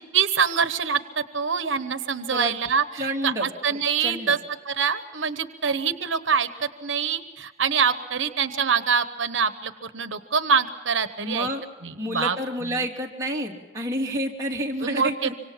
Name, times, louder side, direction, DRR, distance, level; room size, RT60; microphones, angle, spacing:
voice 1, 0.1-4.4 4.7-11.5 11.8-12.4 12.6-12.8 14.8-15.3, right 6 dB, 80° right, 11 dB, 1.0 m, -25 dB
voice 2, 3.0-4.3 11.2-11.6 12.0-15.3, equal, 20° right, -2 dB, 3.0 m, -29 dB
25.5 x 25.5 x 5.8 m, 1.3 s
head